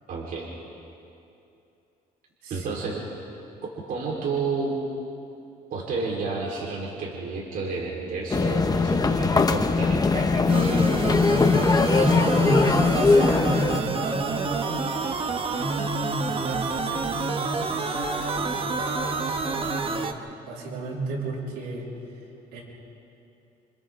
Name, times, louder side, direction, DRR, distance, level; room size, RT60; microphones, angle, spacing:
voice 1, 0.1-0.5 2.5-3.0 3.9-4.7 5.7-11.0, right 4 dB, 55° right, -3 dB, 4.2 m, -31 dB
voice 2, 2.4-2.8 11.7-14.9 15.5-20.2 20.4-21.9 22.5-22.6, right 1 dB, 90° right, -3 dB, 6.3 m, -32 dB
sound 1, 8.3-13.8, left 4 dB, 20° left, 1.0 m, -21 dB
Arcade Game, 10.5-20.1, right 4 dB, 30° right, 1.3 m, -29 dB
29.0 x 28.0 x 3.8 m, 2.7 s
cardioid pair, 110°, 17 cm